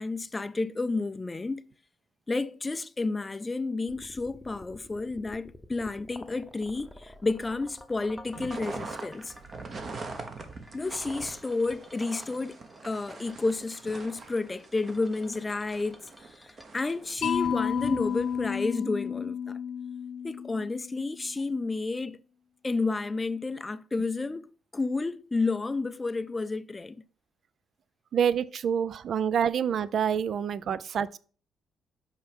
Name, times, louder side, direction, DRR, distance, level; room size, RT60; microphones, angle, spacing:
voice 1, 0.0-1.7 2.3-9.3 10.7-19.6 20.2-22.2 22.6-27.0, left 3 dB, 20° left, 0.4 m, -31 dB
sound 1, 3.9-18.0, left 1 dB, ahead, 0.8 m, -50 dB
sound 2, 8.2-18.6, right 3 dB, 45° right, 1.2 m, -43 dB
Mallet percussion, 17.2-21.2, left 8 dB, 80° left, 0.5 m, -31 dB
voice 2, 28.1-31.2, right 8 dB, 60° right, 0.4 m, -27 dB
5.5 x 4.5 x 5.2 m
cardioid pair, 90°, 0 cm